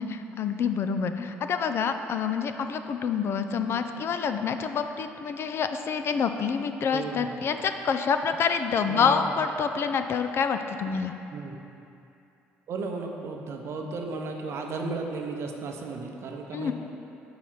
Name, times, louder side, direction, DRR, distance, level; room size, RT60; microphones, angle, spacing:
voice 1, 0.0-11.1 16.5-16.7, left 6 dB, 55° left, 8 dB, 0.3 m, -27 dB
voice 2, 6.9-7.4 8.9-9.3 11.3-11.6 12.7-16.7, right 3 dB, 60° right, 2 dB, 0.7 m, -34 dB
4.8 x 4.0 x 5.8 m, 2.8 s
supercardioid pair, 65°, 5 cm